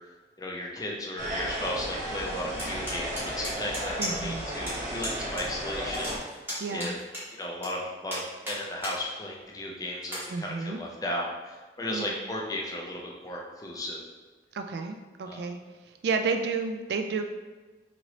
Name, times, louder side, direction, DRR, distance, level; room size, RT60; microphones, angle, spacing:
voice 1, 0.4-6.1 6.7-6.9 7.4-14.0 15.2-15.5, left 1 dB, 20° left, -1 dB, 0.4 m, -35 dB
sound 1, 1.2-6.2, equal, 45° right, 0.8 m, -34 dB
sound 2, 2.6-4.4 4.7-4.8 5.0-5.5 5.7-7.7 8.1-9.0 9.4-9.5 10.0-10.2, equal, 10° right, 0.9 m, -35 dB
voice 2, 4.0-4.5 6.6-7.0 10.3-10.8 11.9-12.1 14.5-15.6 15.9-17.2, right 4 dB, 70° right, 6 dB, 0.3 m, -31 dB
2.9 x 2.9 x 2.7 m, 1.3 s
head